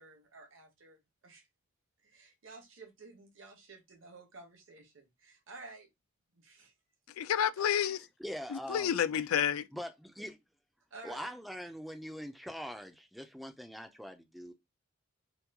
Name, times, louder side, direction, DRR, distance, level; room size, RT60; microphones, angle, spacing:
voice 1, 0.0-1.5 2.0-5.9 6.3-6.7 7.6-7.7 10.9-11.3, right 3 dB, 70° right, 0.9 m, -53 dB
voice 2, 7.2-8.0 8.5-9.7, left 9 dB, 90° left, 0.3 m, -29 dB
voice 3, 8.2-8.9 9.7-10.4 11.0-14.5, equal, ahead, 0.3 m, -43 dB
2.9 x 2.2 x 3.4 m
head